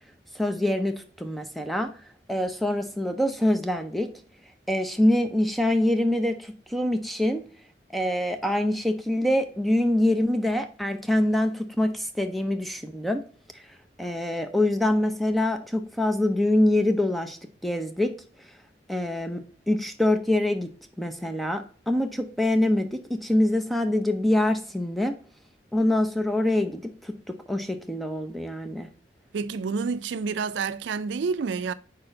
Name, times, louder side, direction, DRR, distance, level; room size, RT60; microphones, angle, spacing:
voice 1, 0.3-1.9 2.3-4.1 4.7-7.4 7.9-13.2 14.0-18.1 18.9-20.7 21.0-25.2 25.7-28.9, left 1 dB, ahead, 0.6 m, -25 dB
voice 2, 29.3-31.7, right 5 dB, 80° right, 0.4 m, -28 dB
4.4 x 4.3 x 5.0 m
head